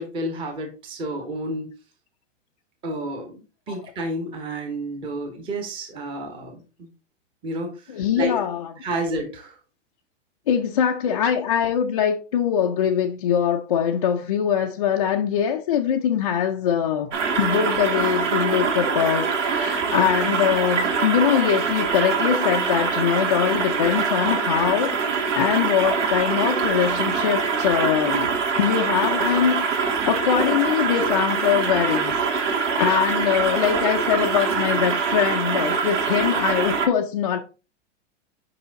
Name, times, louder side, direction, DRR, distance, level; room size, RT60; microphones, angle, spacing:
voice 1, 0.0-1.7 2.8-6.9 7.4-8.4 8.8-9.6, right 1 dB, 15° right, 0.9 m, -31 dB
voice 2, 7.9-8.7 10.5-17.1 17.4-28.3 28.6-37.4, left 9 dB, 30° left, 0.4 m, -23 dB
sound 1, 17.1-36.9, right 5 dB, 75° right, 2.0 m, -24 dB
5.6 x 5.5 x 3.9 m
supercardioid pair, 170°, 37 cm